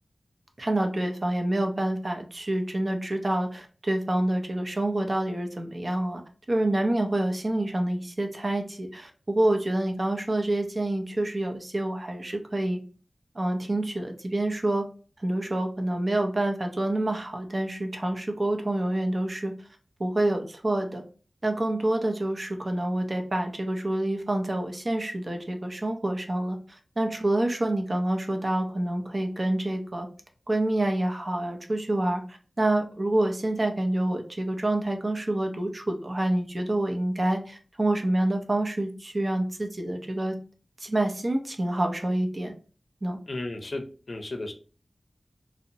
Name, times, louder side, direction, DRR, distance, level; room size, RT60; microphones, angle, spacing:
voice 1, 0.6-6.2 6.5-12.8 13.3-14.8 15.2-19.5 20.0-21.0 21.4-30.1 30.5-40.3 40.8-42.5 43.0-43.2, right 1 dB, 45° right, 4 dB, 0.5 m, -27 dB
voice 2, 43.3-44.5, left 2 dB, 60° left, 4 dB, 0.5 m, -34 dB
2.7 x 2.0 x 2.6 m, 0.38 s
wide cardioid pair, 55°, 0 cm